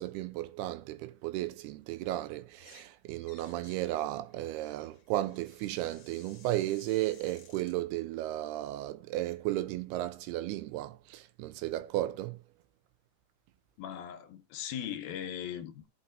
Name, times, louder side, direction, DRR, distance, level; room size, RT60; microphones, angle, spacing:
voice 1, 0.0-12.4, right 15 dB, 85° right, 2.6 m, -34 dB
sound 1, 2.5-2.9 3.2-7.8, left 7 dB, 55° left, 1.9 m, -59 dB
voice 2, 13.8-15.9, left 9 dB, 75° left, 2.5 m, -39 dB
15.5 x 5.8 x 2.5 m
omnidirectional pair, 4.6 m